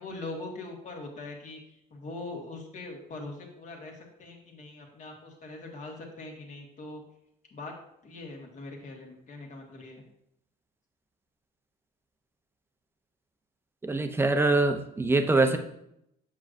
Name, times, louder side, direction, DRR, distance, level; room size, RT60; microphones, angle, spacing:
voice 1, 0.0-1.6 1.9-7.0 7.5-7.7 8.0-10.0 15.4-15.6, left 2 dB, 45° left, 1 dB, 1.6 m, -42 dB
voice 2, 13.8-15.6, right 2 dB, 15° right, 7 dB, 0.6 m, -24 dB
7.3 x 6.3 x 2.6 m, 0.77 s
cardioid pair, 110°, 17 cm